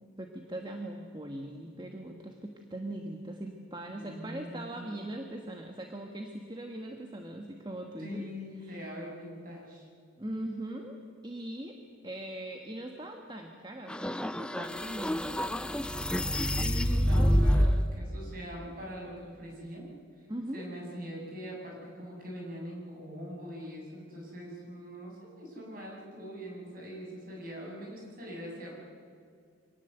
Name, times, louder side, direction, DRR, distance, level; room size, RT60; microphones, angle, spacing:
voice 1, 0.2-8.2 8.6-8.8 10.2-11.8 12.0-15.5 20.3-20.6, right 1 dB, 20° right, 3 dB, 1.4 m, -40 dB
voice 2, 3.9-4.9 8.0-9.9 16.3-19.9 20.2-20.3 20.5-28.8, equal, 45° right, -2 dB, 7.8 m, -42 dB
sound 1, 13.9-17.9, equal, 5° left, 0.6 m, -27 dB
26.0 x 18.5 x 8.0 m, 2.2 s
head